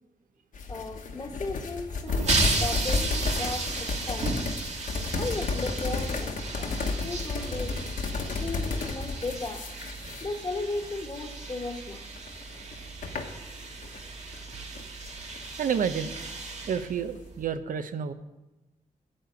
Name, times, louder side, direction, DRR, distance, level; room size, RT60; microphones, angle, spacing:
sound 1, 0.5-10.8 11.3-11.5 12.2-14.0 14.3-15.4, left 3 dB, 70° left, 1.2 m, -32 dB
voice 1, 0.7-4.5 5.1-7.8 8.4-9.7 10.2-12.0, left 3 dB, 30° left, 5 dB, 1.1 m, -36 dB
sound 2, 2.1-17.5, right 3 dB, 50° right, 1.7 m, -34 dB
voice 2, 15.6-16.1 16.7-18.1, right 7 dB, 75° right, 10 dB, 0.7 m, -29 dB
8.9 x 8.2 x 6.8 m, 1.0 s
wide cardioid pair, 130°, 14 cm